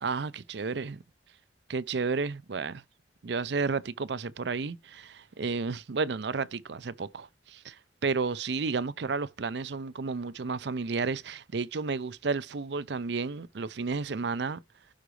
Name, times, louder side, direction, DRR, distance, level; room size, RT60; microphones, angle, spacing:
voice 1, 0.0-1.0 1.7-2.8 3.2-14.6, right 4 dB, 70° right, 0.5 m, -32 dB
11.5 x 5.0 x 3.2 m
head